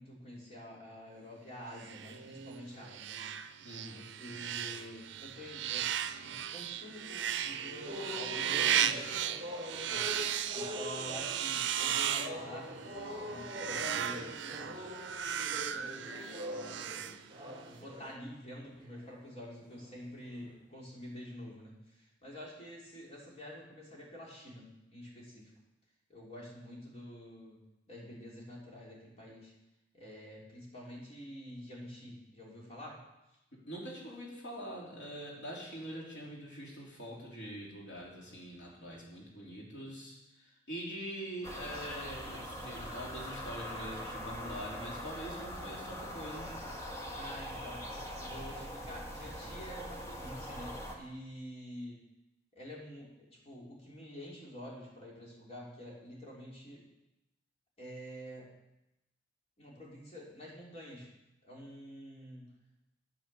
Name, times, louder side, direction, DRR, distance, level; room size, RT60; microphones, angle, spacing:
voice 1, 0.0-3.3 3.9-9.1 9.8-10.1 10.5-14.9 15.7-17.0 17.7-25.5 26.1-27.6 27.9-29.5 29.9-33.0 47.1-47.9 48.2-52.0 52.6-56.8 57.8-58.5 59.6-61.1 61.4-62.5, equal, 35° left, -4 dB, 3.6 m, -48 dB
sound 1, 1.8-17.7, right 9 dB, 75° right, 0.5 m, -36 dB
voice 2, 3.6-4.0 33.7-40.2 40.7-46.5, equal, 70° left, -3 dB, 3.6 m, -44 dB
sound 2, 7.8-18.2 18.7-19.0 19.6-19.9 20.3-20.6, left 1 dB, 25° right, 3.2 m, -44 dB
sound 3, 41.4-51.0, equal, 15° left, 1.6 m, -42 dB
9.4 x 8.3 x 7.0 m, 0.92 s
head